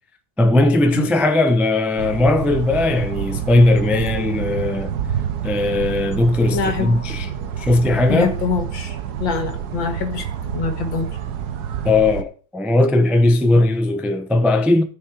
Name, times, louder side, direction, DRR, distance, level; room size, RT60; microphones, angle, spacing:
voice 1, 0.4-4.9 5.4-7.3 7.6-8.3 11.8-14.8, left 2 dB, ahead, 0.4 m, -18 dB
sound 1, 2.0-12.2, right 8 dB, 60° right, 1.4 m, -28 dB
voice 2, 6.5-7.0 8.1-11.2, left 5 dB, 75° left, 2.4 m, -25 dB
13.5 x 5.6 x 4.9 m
omnidirectional pair, 2.1 m